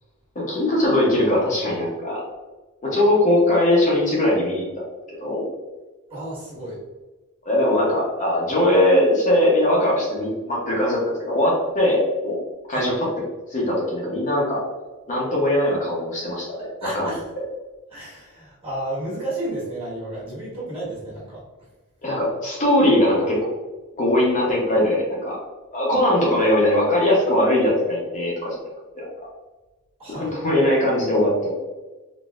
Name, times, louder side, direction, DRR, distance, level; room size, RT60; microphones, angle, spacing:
voice 1, 0.3-2.2 2.8-5.5 7.4-12.4 12.7-13.1 13.5-14.6 15.1-17.1 22.0-23.6 24.0-25.4 25.7-28.6 28.9-29.3 30.1-31.6, left 1 dB, 35° left, -4 dB, 0.8 m, -20 dB
voice 2, 6.1-6.8 12.7-12.9 16.8-17.3 17.9-21.4 30.0-30.3, right 1 dB, 25° right, -7 dB, 1.5 m, -32 dB
4.0 x 2.7 x 2.4 m, 1.2 s
head